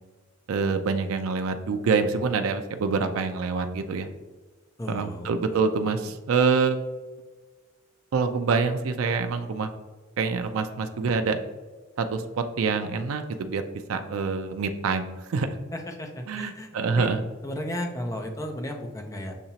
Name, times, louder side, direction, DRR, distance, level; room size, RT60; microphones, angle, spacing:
voice 1, 0.5-4.1 4.9-6.8 8.1-9.7 10.2-11.4 12.0-12.2 12.6-13.6 13.9-15.5 16.3-17.2, right 4 dB, 80° right, 7 dB, 0.4 m, -26 dB
voice 2, 4.8-5.6 15.7-17.1 17.4-19.3, left 1 dB, 15° left, 3 dB, 0.5 m, -34 dB
6.8 x 2.9 x 2.8 m, 1.3 s
head